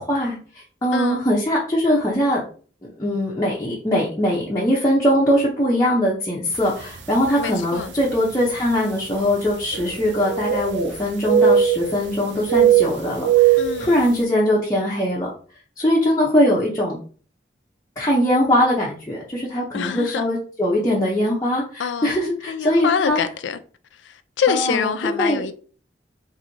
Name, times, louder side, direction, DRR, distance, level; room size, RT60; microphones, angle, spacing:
voice 1, 0.0-2.5 3.0-15.3 15.8-17.0 18.0-23.2 24.5-24.9 25.2-25.4, equal, 20° left, 0.6 m, -21 dB
sound 1, 6.8-7.0 7.7-7.8 9.7-10.9 11.2-12.1 12.5-13.9, right 9 dB, 80° right, 0.5 m, -18 dB
voice 2, 7.4-7.9 13.6-14.1 19.7-20.2 21.8-23.6 24.4-25.5, left 7 dB, 85° left, 0.4 m, -25 dB
3.0 x 2.6 x 3.9 m
head